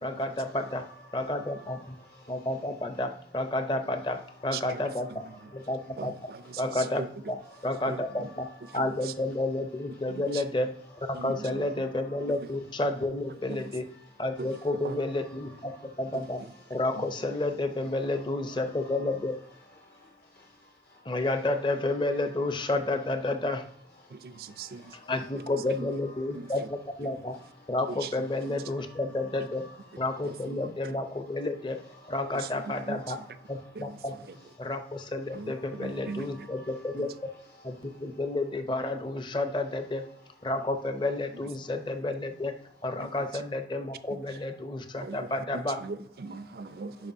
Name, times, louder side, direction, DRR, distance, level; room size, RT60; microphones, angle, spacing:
voice 1, 0.0-0.8 1.1-1.8 2.3-5.2 5.5-6.1 6.6-7.4 7.6-8.5 8.7-10.7 11.0-13.9 14.2-15.7 16.0-16.4 16.7-19.4 21.0-23.6 25.1-27.4 27.7-29.6 30.0-31.8 32.1-33.2 33.5-34.1 34.6-37.1 37.6-40.1 40.4-42.5 42.8-45.8, left 2 dB, 25° left, 0.6 m, -31 dB
voice 2, 1.1-2.4 8.7-8.8 12.2-12.3 14.5-14.7 15.7-15.8 19.8-21.1 24.0-25.1 28.8-29.0 29.3-29.7 32.0-32.3 33.0-33.2 35.6-36.8 37.8-38.0 46.4-47.1, left 1 dB, 60° left, 1.1 m, -54 dB
voice 3, 4.5-4.8 5.1-5.2 6.0-7.1 7.9-8.3 8.8-9.1 10.3-10.4 11.1-11.7 12.4-12.5 13.5-13.6 14.4-14.6 14.8-15.0 16.1-16.2 16.9-17.0 24.1-25.0 25.8-25.9 26.3-26.5 27.9-28.1 30.2-31.0 32.3-33.0 33.8-34.0 35.3-36.3 43.0-43.1 44.1-44.2 45.0-47.1, right 4 dB, 55° right, 0.4 m, -40 dB
11.0 x 4.6 x 2.7 m
head